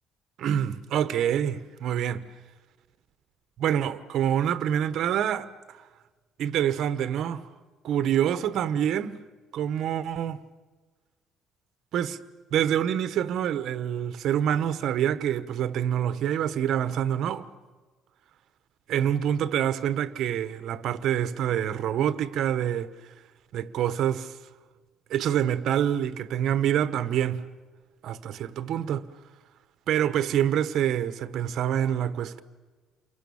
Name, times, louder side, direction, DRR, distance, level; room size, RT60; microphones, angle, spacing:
voice 1, 0.4-2.2 3.6-5.8 6.4-7.4 7.8-9.2 9.5-10.4 11.9-12.2 12.5-17.5 18.9-22.9 23.5-24.4 25.1-27.5 28.0-29.1 29.9-32.4, right 10 dB, 60° right, 1.2 m, -26 dB
29.0 x 23.5 x 7.2 m
cardioid pair, 160°, 0 cm